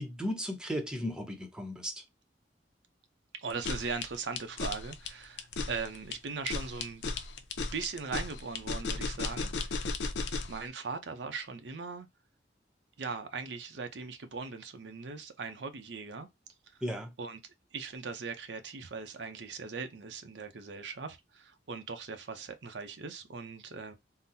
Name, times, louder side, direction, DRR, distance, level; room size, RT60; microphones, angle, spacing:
voice 1, 0.0-2.0 16.8-17.1, equal, 5° right, 0.6 m, -35 dB
voice 2, 3.3-7.0 7.7-10.0 10.5-12.1 13.0-16.3 17.2-17.4 17.7-23.9, right 4 dB, 80° right, 0.6 m, -39 dB
sound 1, 3.5-10.6, left 4 dB, 85° left, 0.5 m, -35 dB
3.8 x 2.0 x 2.6 m
head